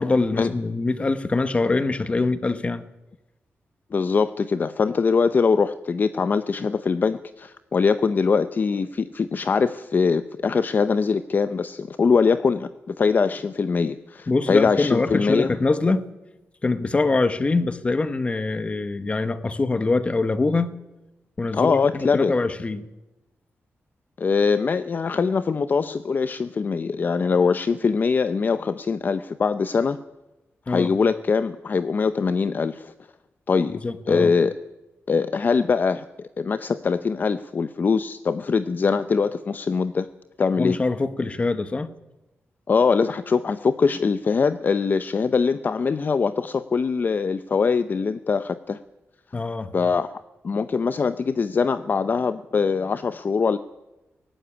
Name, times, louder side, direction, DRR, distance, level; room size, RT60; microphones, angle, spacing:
voice 1, 0.0-2.8 14.3-16.1 16.6-20.8 21.4-22.9 30.7-30.9 33.8-34.3 40.6-41.9 49.3-49.7, left 3 dB, 25° left, 12 dB, 1.1 m, -24 dB
voice 2, 3.9-15.6 21.5-22.3 24.2-30.0 30.7-32.9 33.5-33.8 34.1-34.5 35.1-40.1 40.4-40.8 42.7-48.8 49.7-53.6, left 5 dB, 40° left, 12 dB, 0.7 m, -22 dB
18.0 x 14.5 x 9.9 m, 1.0 s
wide cardioid pair, 155°, 5 cm